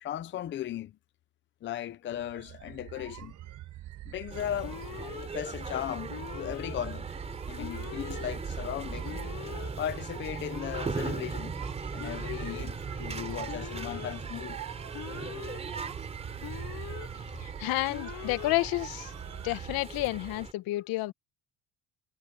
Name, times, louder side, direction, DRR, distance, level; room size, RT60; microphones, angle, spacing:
voice 1, 0.0-1.0 1.6-3.3 4.0-4.8 5.3-7.1 7.5-9.1 9.8-11.6 11.9-14.6 18.1-18.3, left 11 dB, 35° left, 0.6 m, -37 dB
sound 1, 2.1-19.8, right 14 dB, 60° right, 5.2 m, -45 dB
sound 2, 4.3-20.5, right 4 dB, 20° right, 4.2 m, -39 dB
Alarm, 4.6-5.3 6.1-6.7 7.6-8.2 9.0-9.7 10.5-11.2 12.0-12.6 13.5-14.1 14.9-15.6 16.4-17.1 17.9-18.5, left 15 dB, 60° left, 0.9 m, -42 dB
voice 2, 17.4-19.1 19.4-21.1, left 19 dB, 85° left, 1.2 m, -30 dB
cardioid pair, 165°, 35 cm